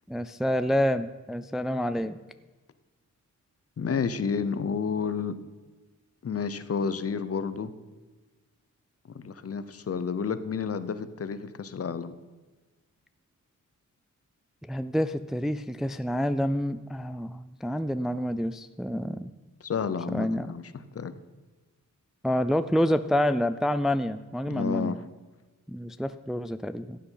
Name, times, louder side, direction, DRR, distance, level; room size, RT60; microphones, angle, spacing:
voice 1, 0.1-2.2 14.7-19.3 20.1-20.6 22.2-25.0 25.7-27.0, equal, ahead, 12 dB, 0.4 m, -28 dB
voice 2, 3.8-5.4 6.2-7.7 9.1-12.2 19.6-21.1 24.5-25.0, left 6 dB, 50° left, 13 dB, 0.9 m, -31 dB
15.5 x 8.7 x 5.8 m, 1.3 s
wide cardioid pair, 105°, 31 cm